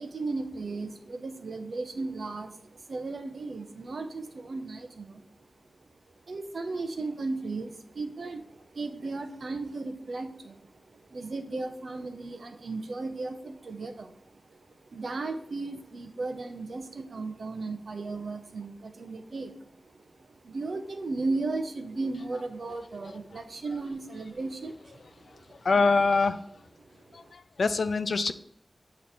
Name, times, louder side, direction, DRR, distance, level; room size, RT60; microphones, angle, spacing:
voice 1, 0.0-5.2 6.3-25.6 26.9-27.3, right 3 dB, 80° right, 6 dB, 0.7 m, -36 dB
voice 2, 25.6-26.4 27.1-28.3, left 4 dB, 85° left, 12 dB, 0.4 m, -24 dB
8.5 x 3.2 x 4.1 m, 0.69 s
wide cardioid pair, 100°, 0 cm